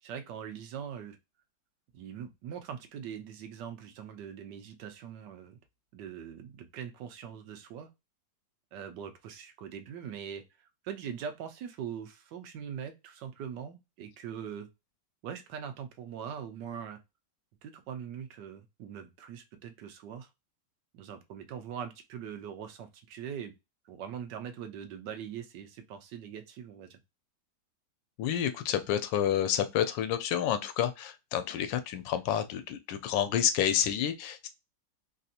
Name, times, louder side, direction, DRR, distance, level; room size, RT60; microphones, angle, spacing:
voice 1, 0.0-1.2 1.9-5.6 5.9-7.9 8.7-10.4 10.8-14.7 15.2-17.0 17.6-20.3 20.9-23.5 23.9-27.0, right 8 dB, 80° right, 1.3 m, -42 dB
voice 2, 28.2-34.5, left 10 dB, 90° left, 1.3 m, -29 dB
3.4 x 2.7 x 2.4 m
omnidirectional pair, 1.9 m